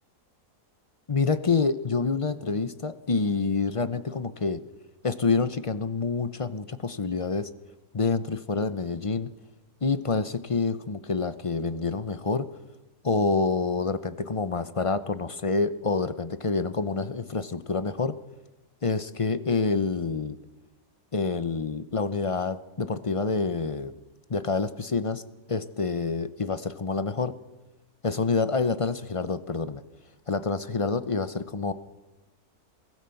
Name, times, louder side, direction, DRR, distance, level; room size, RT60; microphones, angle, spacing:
voice 1, 1.1-4.6 5.0-7.5 7.9-9.3 9.8-12.5 13.0-18.2 18.8-20.4 21.1-23.9 24.3-25.2 25.5-27.3 28.0-29.8 30.3-31.7, left 4 dB, 40° left, 13 dB, 0.4 m, -27 dB
23.0 x 17.0 x 7.0 m, 1.1 s
omnidirectional pair, 1.7 m